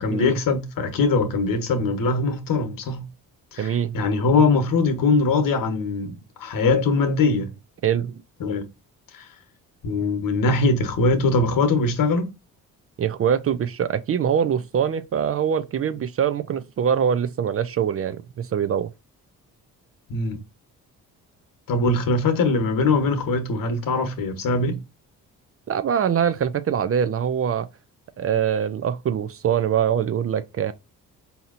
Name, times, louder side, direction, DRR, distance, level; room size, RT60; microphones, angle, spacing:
voice 1, 0.0-3.0 3.5-7.5 8.4-8.6 9.1-9.2 9.8-12.3 20.1-20.4 21.7-24.8, left 3 dB, 60° left, 1.1 m, -22 dB
voice 2, 3.6-4.0 7.8-8.2 13.0-18.9 25.7-27.7 28.2-30.7, right 8 dB, 40° right, 0.4 m, -23 dB
4.2 x 2.8 x 2.4 m
supercardioid pair, 65°, 37 cm